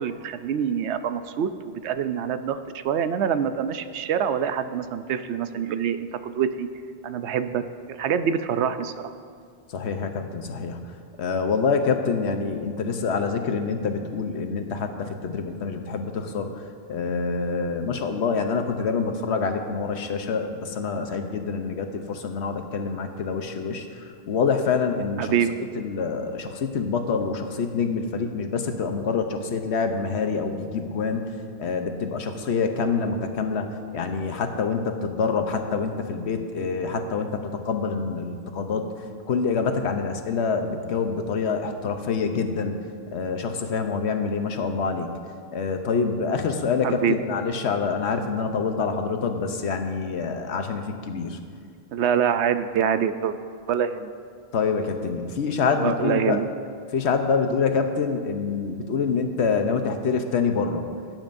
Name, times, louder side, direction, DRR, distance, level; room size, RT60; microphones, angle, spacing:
voice 1, 0.0-2.6 2.8-6.7 7.0-9.1 25.2-25.5 46.8-47.2 51.9-53.4 53.7-54.1 55.8-56.5, right 8 dB, 85° right, 10 dB, 0.9 m, -25 dB
voice 2, 9.7-10.9 11.2-16.5 16.9-25.3 25.7-31.3 31.6-33.7 33.9-38.9 39.3-42.8 43.1-45.2 45.5-51.4 54.5-56.4 56.9-60.9, left 5 dB, 85° left, 6 dB, 1.1 m, -26 dB
17.5 x 9.0 x 2.6 m, 2.2 s
omnidirectional pair, 1.1 m